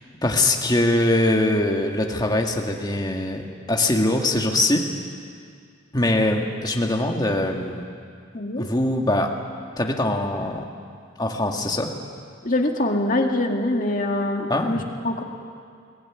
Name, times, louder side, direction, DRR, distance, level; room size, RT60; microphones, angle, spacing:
voice 1, 0.2-4.9 5.9-7.8 8.6-9.3 9.8-10.6 11.2-11.9 14.5-14.8, left 1 dB, 20° left, 2 dB, 1.8 m, -22 dB
voice 2, 8.3-8.7 12.4-15.2, left 1 dB, 45° left, 2 dB, 2.0 m, -24 dB
22.5 x 17.0 x 9.5 m, 2.2 s
head